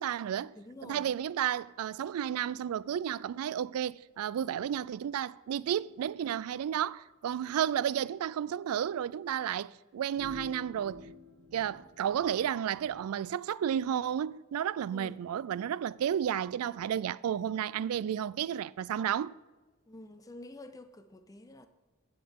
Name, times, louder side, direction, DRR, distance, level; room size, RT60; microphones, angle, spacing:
voice 1, 0.0-0.5 0.8-11.1 11.5-19.3, right 9 dB, 90° right, 0.3 m, -32 dB
voice 2, 0.5-1.1 14.9-15.2 16.5-17.0 19.9-21.7, left 1 dB, 15° left, 0.5 m, -49 dB
sound 1, 10.2-13.0, left 2 dB, 65° right, 1.0 m, -50 dB
9.8 x 8.5 x 3.7 m
head